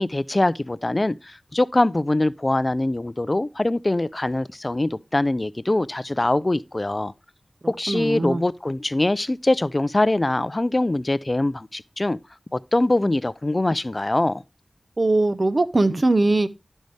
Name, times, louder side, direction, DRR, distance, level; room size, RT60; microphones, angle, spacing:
voice 1, 0.0-7.1 7.7-12.2 12.5-14.4, left 2 dB, 35° left, 0.4 m, -23 dB
voice 2, 7.9-8.4 15.0-16.5, right 2 dB, 50° right, 0.5 m, -20 dB
10.5 x 5.4 x 3.2 m
wide cardioid pair, 50°, 0 cm